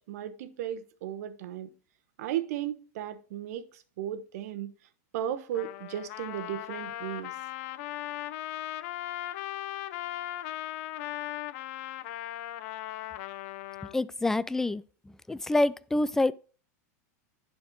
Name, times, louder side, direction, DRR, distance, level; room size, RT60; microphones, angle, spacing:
voice 1, 0.1-1.7 2.2-4.7 5.1-7.3, right 11 dB, 65° right, 1.0 m, -35 dB
Trumpet, 5.5-14.0, left 14 dB, 55° left, 0.6 m, -38 dB
voice 2, 13.8-16.3, left 2 dB, 5° left, 0.3 m, -27 dB
10.5 x 4.3 x 4.5 m
supercardioid pair, 135°, 9 cm